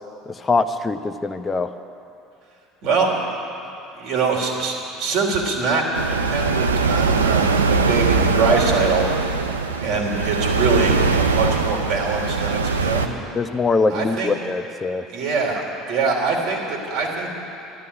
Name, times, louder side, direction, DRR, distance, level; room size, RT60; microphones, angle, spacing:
voice 1, 0.3-1.7 13.3-15.0, left 3 dB, 20° left, 8 dB, 0.8 m, -22 dB
voice 2, 3.9-9.0 9.8-13.2 13.9-14.3 15.1-17.3, right 4 dB, 55° right, 0 dB, 3.3 m, -23 dB
sound 1, 5.9-13.1, right 4 dB, 85° right, 0.7 m, -21 dB
13.0 x 12.5 x 8.6 m, 2.7 s
figure-of-eight pair, 65°, 0 cm